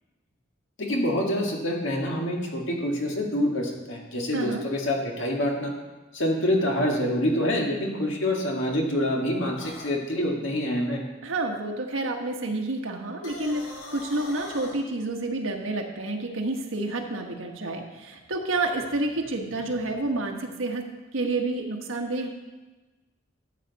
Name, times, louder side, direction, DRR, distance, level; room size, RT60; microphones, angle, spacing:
voice 1, 0.8-5.7 6.1-11.0, left 1 dB, 70° left, 0 dB, 1.9 m, -26 dB
sound 1, 9.6-9.9 13.1-14.8, left 2 dB, 90° left, 1.8 m, -41 dB
voice 2, 11.2-20.9 21.1-22.3, right 2 dB, 85° right, 3 dB, 1.3 m, -29 dB
13.0 x 7.8 x 4.1 m, 1.2 s
head